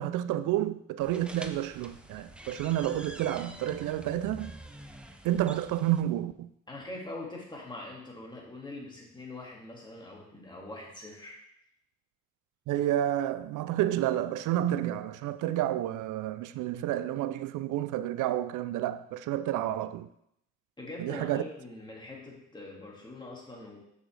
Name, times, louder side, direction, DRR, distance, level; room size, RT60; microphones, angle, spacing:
voice 1, 0.0-4.5 5.2-6.5 12.7-20.1 21.0-21.4, right 13 dB, 85° right, 0.5 m, -30 dB
sound 1, 1.0-6.0, right 1 dB, 5° right, 0.6 m, -46 dB
voice 2, 6.7-11.4 20.8-23.8, left 2 dB, 15° left, 2.2 m, -43 dB
6.3 x 6.3 x 3.4 m
cardioid pair, 90°, 30 cm